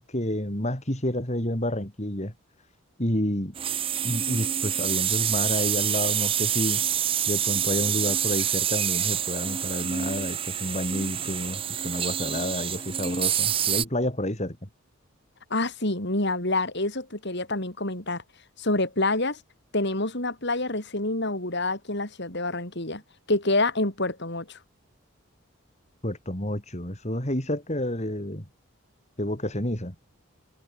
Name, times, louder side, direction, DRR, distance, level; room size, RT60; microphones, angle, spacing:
voice 1, 0.0-2.3 3.0-3.6 4.0-6.8 7.3-14.7 26.0-28.5 29.2-29.9, left 1 dB, 35° left, 5.3 m, -29 dB
sound 1, 3.6-13.9, right 9 dB, 25° right, 0.6 m, -27 dB
voice 2, 15.5-18.2 18.6-19.4 19.7-23.0 23.3-24.6, left 2 dB, 55° left, 6.1 m, -27 dB
head